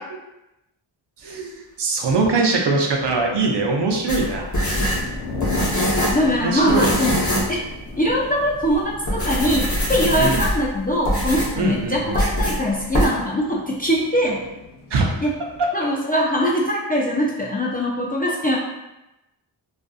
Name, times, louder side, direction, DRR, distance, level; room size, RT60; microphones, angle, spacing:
sound 1, 1.2-1.4 2.1-2.3 2.6-15.7, left 3 dB, 75° left, 0.7 m, -38 dB
voice 1, 1.2-4.5 6.4-6.9 10.2-10.4 11.6-12.2 14.9-15.1 15.6-15.9, right 3 dB, 55° right, 0 dB, 0.6 m, -22 dB
sound 2, 4.1-6.3 6.7-7.5 7.9-8.0 8.6-8.7 9.0-10.7 11.0-11.6 12.1-12.6 12.9-13.1, equal, 35° left, 0.9 m, -22 dB
voice 2, 6.1-7.1 7.5-7.6 7.9-14.4 15.2-15.3 15.7-18.6, equal, 20° left, -4 dB, 0.4 m, -22 dB
2.5 x 2.4 x 2.3 m, 0.95 s
cardioid pair, 55°, 49 cm